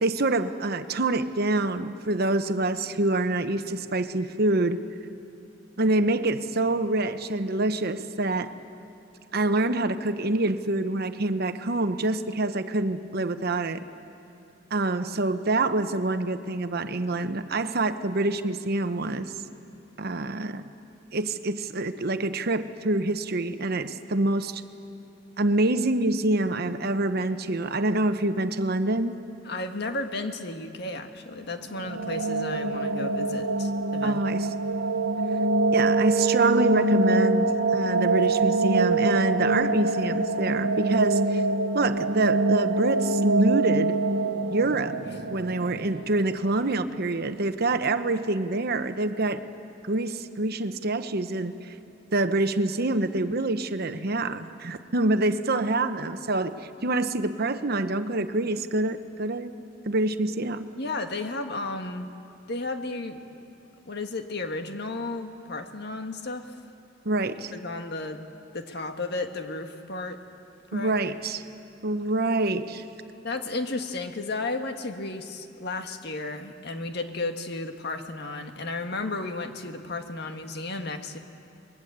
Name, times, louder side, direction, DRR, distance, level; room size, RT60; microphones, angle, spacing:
voice 1, 0.0-4.8 5.8-8.5 9.3-13.8 14.7-19.3 20.0-20.7 21.1-24.6 25.4-29.2 34.0-34.5 35.7-41.4 41.7-44.0 44.5-44.9 45.3-49.4 49.8-51.7 52.1-56.6 56.8-59.5 59.9-60.7 67.0-67.5 70.7-71.4 71.8-72.8, right 2 dB, 55° right, 10 dB, 1.0 m, -26 dB
voice 2, 29.4-34.5 60.8-62.1 62.5-63.2 63.8-66.5 67.5-68.2 68.5-70.2 70.7-70.9 73.2-81.2, left 2 dB, 60° left, 6 dB, 1.6 m, -33 dB
sound 1, 31.6-46.6, right 2 dB, 85° right, 1.3 m, -25 dB
27.5 x 21.5 x 8.1 m, 2.7 s
head